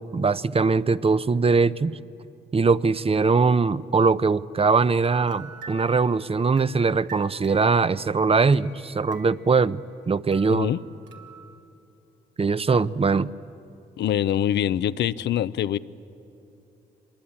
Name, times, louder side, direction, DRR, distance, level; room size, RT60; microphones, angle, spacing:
voice 1, 0.0-1.9 2.5-9.8 10.1-10.7 12.4-13.3, right 4 dB, 30° right, 0.7 m, -21 dB
sound 1, 5.0-10.0 10.3-11.6, right 5 dB, 80° right, 3.0 m, -46 dB
voice 2, 10.5-10.8 14.0-15.8, left 10 dB, 75° left, 0.7 m, -24 dB
25.5 x 22.0 x 8.8 m
supercardioid pair, 55°, 18 cm